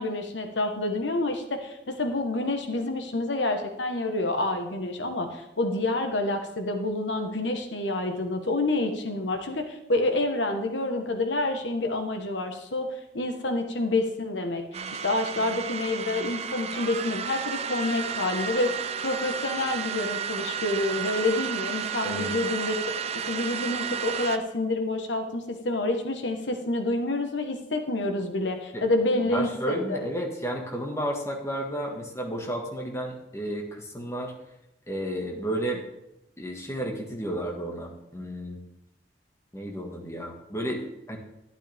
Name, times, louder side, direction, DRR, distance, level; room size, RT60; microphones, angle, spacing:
voice 1, 0.0-12.9 13.1-14.6 14.9-30.1, left 2 dB, 90° left, 5 dB, 1.4 m, -28 dB
sound 1, 14.7-24.4, right 7 dB, 35° right, 0.5 m, -32 dB
voice 2, 22.0-22.3 28.7-28.8 29.2-34.3 34.9-35.8 36.4-38.6 39.5-40.8 41.1-41.2, right 1 dB, 15° left, 1 dB, 1.8 m, -32 dB
11.5 x 11.5 x 3.6 m, 0.86 s
head